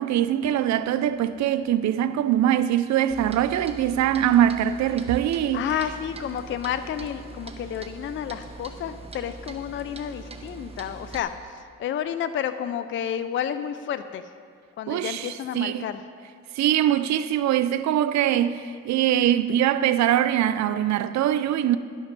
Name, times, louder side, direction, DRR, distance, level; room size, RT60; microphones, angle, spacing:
voice 1, 0.0-5.6 14.9-15.9 16.5-21.8, right 11 dB, 65° right, 0.5 m, -22 dB
Clock, 3.1-11.2, right 3 dB, 20° right, 0.9 m, -42 dB
voice 2, 5.5-14.2 14.8-16.0, left 9 dB, 40° left, 0.4 m, -31 dB
11.5 x 6.0 x 5.2 m
cardioid pair, 90°, 30 cm